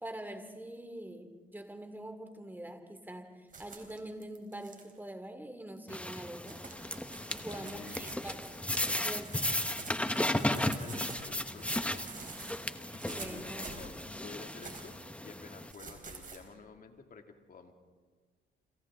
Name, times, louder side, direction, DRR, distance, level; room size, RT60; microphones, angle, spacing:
voice 1, 0.0-6.6 7.3-8.5 8.8-9.5 13.1-13.7, right 1 dB, 10° right, 6 dB, 2.5 m, -44 dB
sound 1, 3.5-4.9 5.8-5.9 6.2-11.3 11.6-14.0 14.4-15.0 15.7-16.4, right 4 dB, 40° right, 4.3 m, -48 dB
sound 2, 5.9-15.7, left 1 dB, 5° left, 1.1 m, -35 dB
voice 2, 7.5-8.1 10.3-17.7, left 5 dB, 45° left, 4 dB, 2.5 m, -51 dB
29.0 x 27.0 x 3.7 m, 1.5 s
cardioid pair, 90°, 20 cm